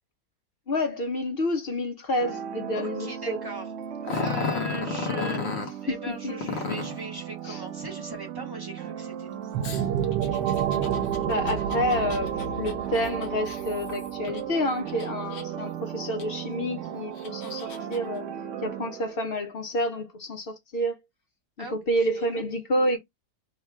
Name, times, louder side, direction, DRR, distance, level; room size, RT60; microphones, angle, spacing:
voice 1, 0.7-3.4 4.8-5.4 6.2-6.5 7.4-7.6 11.3-18.3 18.6-21.0 21.6-23.0, equal, 70° left, 0.5 m, -29 dB
sound 1, 2.2-19.4, right 8 dB, 65° right, 0.8 m, -37 dB
voice 2, 2.7-3.7 4.1-9.7 21.6-21.8 22.1-22.3, right 1 dB, 35° right, 0.4 m, -39 dB
Growling, 4.0-5.7 6.4-7.0 9.6-14.4 14.9-15.7 16.2-16.3 17.0-18.0, left 5 dB, 50° left, 1.0 m, -33 dB
sound 2, 9.5-19.1, right 9 dB, 90° right, 1.2 m, -32 dB
3.5 x 2.2 x 4.4 m
omnidirectional pair, 1.8 m